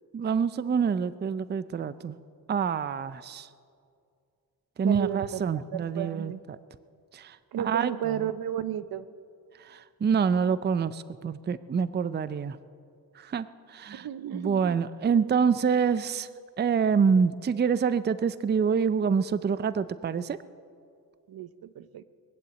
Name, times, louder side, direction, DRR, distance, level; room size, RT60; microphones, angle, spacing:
voice 1, 0.1-2.2 2.5-3.5 4.8-6.6 7.1-8.2 9.7-12.6 13.2-14.1 14.3-16.3 16.6-20.4, right 6 dB, 30° right, 15 dB, 0.5 m, -26 dB
voice 2, 4.8-6.4 7.5-9.1 13.9-14.8 21.3-22.0, right 10 dB, 75° right, 14 dB, 0.7 m, -33 dB
22.5 x 7.7 x 8.0 m, 2.3 s
cardioid pair, 80°, 37 cm